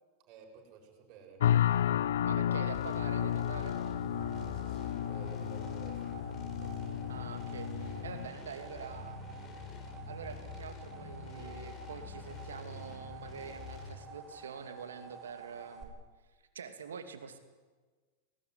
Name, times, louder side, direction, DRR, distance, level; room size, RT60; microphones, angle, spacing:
voice 1, 0.3-1.5 4.4-6.2, right 6 dB, 50° right, 2 dB, 7.4 m, -53 dB
sound 1, 1.4-8.3, left 10 dB, 75° left, 0.8 m, -32 dB
voice 2, 2.2-3.8 7.1-9.2 10.1-16.0 16.5-17.4, right 6 dB, 80° right, 8 dB, 2.7 m, -45 dB
sound 2, 2.7-13.9, left 4 dB, 35° left, 4.9 m, -45 dB
sound 3, 2.7-15.8, right 4 dB, 15° right, 5.8 m, -51 dB
19.5 x 19.5 x 9.8 m, 1.4 s
hypercardioid pair, 100°, 0 cm